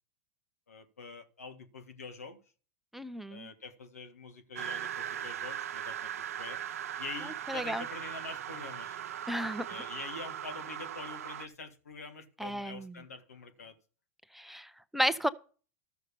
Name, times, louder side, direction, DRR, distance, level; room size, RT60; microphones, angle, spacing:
voice 1, 0.7-2.4 3.3-6.1 6.4-6.6 7.0-9.0 9.7-13.8, left 4 dB, 90° left, 1.7 m, -45 dB
voice 2, 2.9-3.5 7.5-7.8 9.3-9.7 12.4-13.0 14.3-15.3, equal, ahead, 0.6 m, -33 dB
sound 1, 4.6-11.5, right 10 dB, 80° right, 0.7 m, -39 dB
13.0 x 6.6 x 6.9 m
hypercardioid pair, 100°, 8 cm